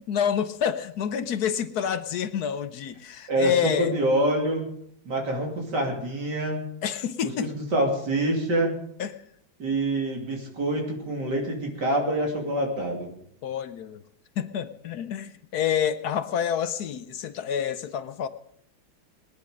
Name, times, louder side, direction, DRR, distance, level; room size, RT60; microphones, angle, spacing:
voice 1, 0.1-3.9 6.8-7.5 9.0-9.2 13.4-14.0 14.4-18.3, left 8 dB, 65° left, 1.1 m, -28 dB
voice 2, 3.3-4.7 5.0-6.6 7.4-8.8 9.6-13.1, right 1 dB, 60° right, 3.5 m, -26 dB
21.0 x 10.0 x 5.2 m
omnidirectional pair, 2.0 m